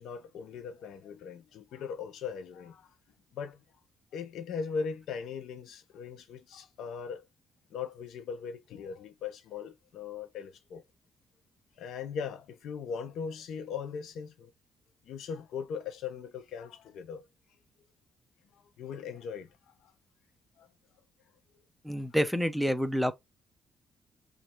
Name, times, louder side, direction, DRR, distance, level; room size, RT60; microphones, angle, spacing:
voice 1, 0.0-2.9 3.3-3.6 4.1-7.2 7.7-10.8 11.8-14.5 15.1-17.2 18.8-19.5 20.6-20.7, left 6 dB, 75° left, 0.8 m, -39 dB
voice 2, 21.8-23.1, equal, ahead, 0.6 m, -28 dB
3.2 x 2.6 x 4.4 m
cardioid pair, 90°, 0 cm